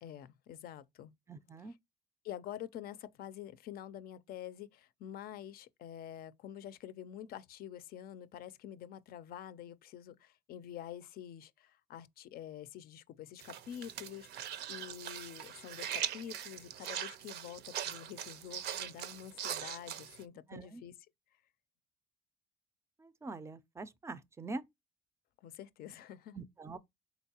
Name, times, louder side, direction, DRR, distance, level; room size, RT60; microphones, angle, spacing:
voice 1, 0.0-1.1 2.2-20.9 25.4-26.4, left 10 dB, 65° left, 0.4 m, -47 dB
voice 2, 1.3-1.8 20.5-20.8 23.0-24.6 26.3-26.8, right 3 dB, 15° right, 0.4 m, -44 dB
sound 1, 13.4-20.2, right 10 dB, 75° right, 0.5 m, -41 dB
4.5 x 4.0 x 2.8 m
cardioid pair, 110°, 17 cm